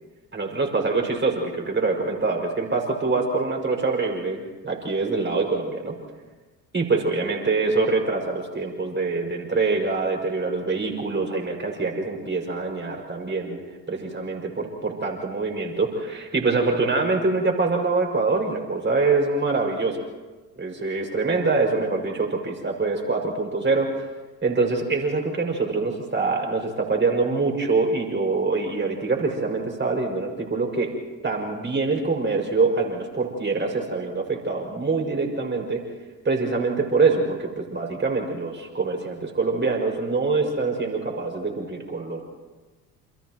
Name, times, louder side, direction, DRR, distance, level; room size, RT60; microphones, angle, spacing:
voice 1, 0.3-6.0 6.7-13.6 13.9-20.0 20.6-23.9 24.4-30.9 31.2-35.9 36.2-42.2, right 3 dB, 25° right, 1 dB, 6.2 m, -24 dB
29.5 x 29.0 x 3.1 m, 1.3 s
figure-of-eight pair, 55°, 48 cm